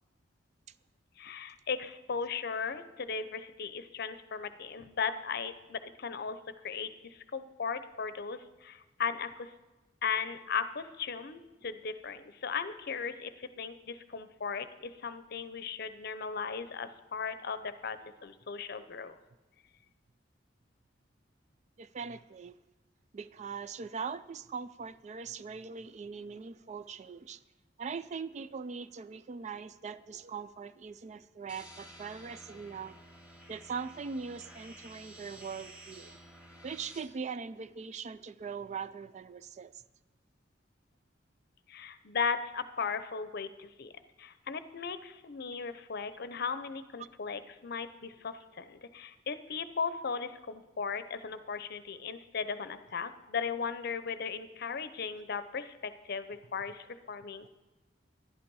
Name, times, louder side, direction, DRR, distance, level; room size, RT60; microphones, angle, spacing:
voice 1, 1.2-6.4 6.6-9.5 10.0-19.1 41.7-43.9 44.2-57.5, left 5 dB, 60° left, 12 dB, 0.6 m, -37 dB
voice 2, 21.8-22.6 23.1-27.4 27.8-33.0 33.5-36.2 36.6-39.7 47.0-47.1, right 5 dB, 40° right, 15 dB, 0.3 m, -41 dB
sound 1, 31.5-37.0, equal, 10° right, 1.9 m, -52 dB
11.5 x 11.0 x 4.7 m, 1.1 s
head